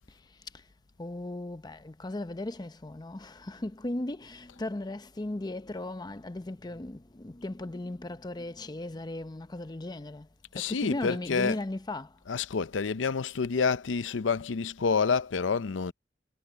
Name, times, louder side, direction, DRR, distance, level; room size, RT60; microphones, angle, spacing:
voice 1, 1.0-10.3 10.6-12.1, left 1 dB, 20° left, 0.7 m, -37 dB
voice 2, 10.5-11.6 12.3-15.9, left 5 dB, 90° left, 0.6 m, -28 dB
head